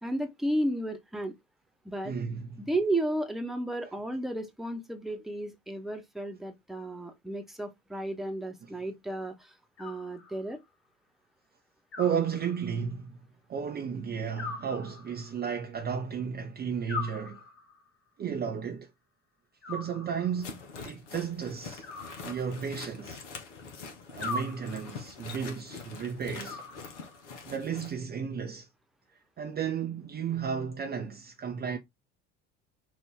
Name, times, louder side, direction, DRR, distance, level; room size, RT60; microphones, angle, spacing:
voice 1, 0.0-1.3 1.8-2.1 2.6-9.3 9.8-10.6, right 1 dB, ahead, 1.0 m, -33 dB
voice 2, 2.0-2.6 3.8-3.9 8.6-8.7 12.0-13.2 13.5-17.4 18.2-18.9 19.7-21.9 22.2-23.2 24.1-26.6 27.5-28.7 29.4-31.8, right 7 dB, 25° right, 0.7 m, -33 dB
Animal, 9.8-10.7 11.9-12.9 14.4-15.5 16.9-17.9 19.6-20.5 21.8-22.9 24.2-25.1 26.4-27.3, left 3 dB, 35° left, 1.6 m, -41 dB
sound 1, 20.4-27.9, left 5 dB, 70° left, 1.1 m, -44 dB
6.2 x 2.6 x 3.3 m
figure-of-eight pair, 60°, 37 cm